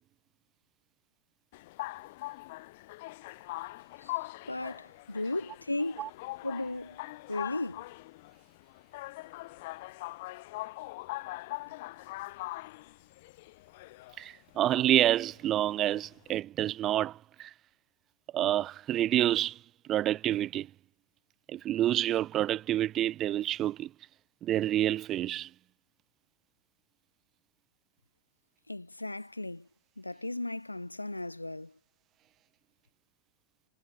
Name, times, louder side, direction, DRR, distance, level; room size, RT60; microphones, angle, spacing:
sound 1, 1.5-16.4, left 20 dB, 50° left, 1.4 m, -42 dB
voice 1, 4.5-6.1 6.4-7.0 7.3-7.8 28.7-29.7 30.0-31.7, left 2 dB, 85° left, 0.7 m, -36 dB
voice 2, 14.2-17.5 18.3-19.6 19.9-20.7 21.5-23.9 24.4-25.5, right 12 dB, 30° right, 0.4 m, -28 dB
figure-of-eight pair, 90°, 0 cm